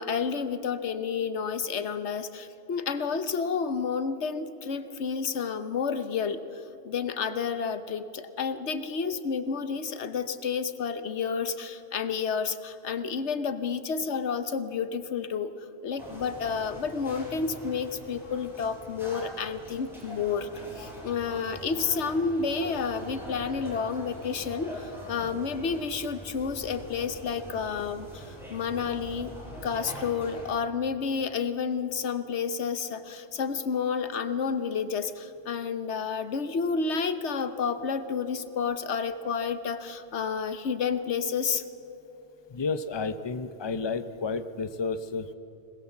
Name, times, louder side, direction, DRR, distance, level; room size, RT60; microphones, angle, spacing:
voice 1, 0.0-15.5 15.8-29.3 29.6-41.6, left 5 dB, 90° left, 10 dB, 1.3 m, -30 dB
sound 1, 16.0-30.5, equal, ahead, 7.1 m, -43 dB
voice 2, 42.5-45.3, left 4 dB, 25° left, 10 dB, 0.7 m, -31 dB
26.0 x 19.5 x 7.3 m, 3.0 s
omnidirectional pair, 1.1 m